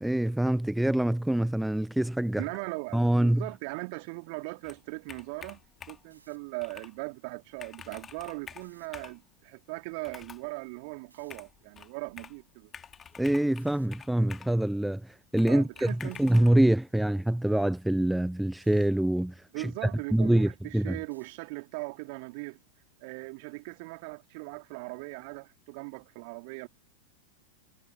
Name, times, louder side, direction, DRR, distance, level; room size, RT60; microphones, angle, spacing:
voice 1, 0.0-2.4 2.9-3.4 13.2-15.1 15.3-15.9 16.2-19.7 20.1-21.0, right 1 dB, 5° right, 0.4 m, -25 dB
voice 2, 2.4-5.6 5.9-12.7 15.5-16.2 19.5-22.6 23.0-26.7, right 31 dB, 45° right, 2.9 m, -39 dB
Computer keyboard, 4.6-6.1 6.6-6.9 7.3-7.4 7.6-9.2 10.0-10.5 11.3-12.4 12.7-14.6 15.4-16.5, left 7 dB, 20° left, 2.1 m, -48 dB
sound 1, 6.0-6.4 8.5-8.9 11.1-11.4 13.6-13.9 16.1-16.4 18.6-18.9 21.1-21.5, right 5 dB, 75° right, 5.1 m, -61 dB
figure-of-eight pair, 90°, 0 cm